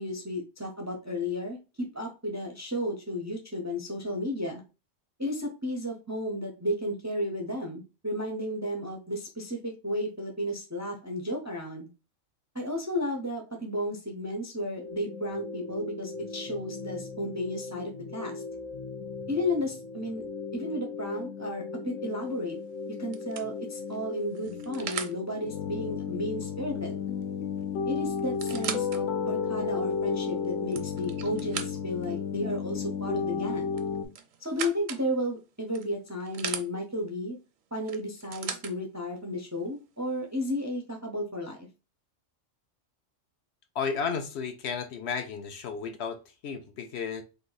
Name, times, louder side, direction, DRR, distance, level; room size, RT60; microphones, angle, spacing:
voice 1, 0.0-4.6 5.2-11.9 12.5-18.4 19.3-20.2 20.5-22.6 23.0-27.0 27.8-33.8 34.4-37.4 37.7-41.7, left 1 dB, 25° right, 0.4 m, -33 dB
sound 1, 14.8-34.0, left 6 dB, 85° left, 1.1 m, -34 dB
sound 2, 22.2-22.5 23.1-25.2 27.2-27.3 27.6-27.7 28.2-29.0 29.6-29.7 30.5-32.1 33.7-35.1 35.7-36.7 37.9-38.7 39.7-39.8, right 8 dB, 85° right, 1.0 m, -38 dB
voice 2, 43.8-47.2, left 6 dB, 65° left, 0.8 m, -33 dB
3.3 x 2.6 x 3.9 m
omnidirectional pair, 1.3 m